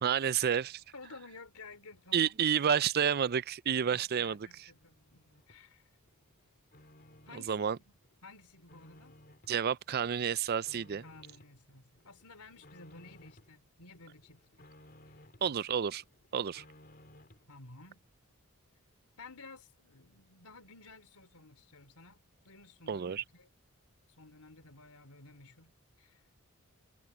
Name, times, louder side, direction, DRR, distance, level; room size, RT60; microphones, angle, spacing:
voice 1, 0.0-0.8 2.1-4.7 7.3-7.8 9.5-11.0 15.4-16.0 16.3-16.6 22.9-23.2, right 8 dB, 45° right, 0.4 m, -30 dB
voice 2, 0.9-2.3 3.8-5.9 7.3-7.9 8.2-9.2 11.0-14.7 15.1-15.6 17.5-18.0 19.2-23.5 24.2-25.7 26.0-26.2, left 3 dB, 90° left, 3.8 m, -54 dB
sound 1, 4.8-5.6 6.1-7.6 8.0-9.6 10.0-11.6 12.0-13.5 13.9-15.5 15.9-17.5, left 1 dB, 40° left, 3.9 m, -59 dB
head